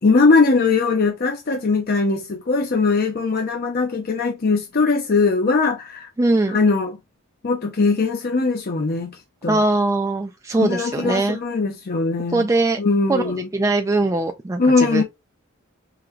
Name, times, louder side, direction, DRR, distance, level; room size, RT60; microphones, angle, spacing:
voice 1, 0.0-6.1 6.5-7.0 7.4-9.6 10.6-12.5 12.8-13.5 14.6-15.0, left 4 dB, 45° left, 0.6 m, -20 dB
voice 2, 6.2-6.6 9.5-11.4 12.3-12.8 13.1-13.2 13.5-15.0, right 2 dB, 15° right, 0.3 m, -21 dB
3.8 x 2.2 x 4.4 m
head